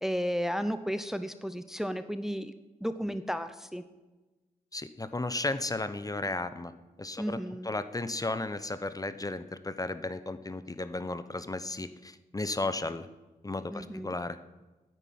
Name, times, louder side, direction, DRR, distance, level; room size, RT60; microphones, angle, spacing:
voice 1, 0.0-2.5 2.8-3.8 7.2-7.7 13.7-14.1, equal, 5° right, 11 dB, 0.8 m, -33 dB
voice 2, 4.7-6.7 7.0-13.1 13.4-14.4, left 2 dB, 25° left, 12 dB, 0.9 m, -34 dB
10.0 x 8.9 x 9.5 m, 1.2 s
cardioid pair, 60°, 16 cm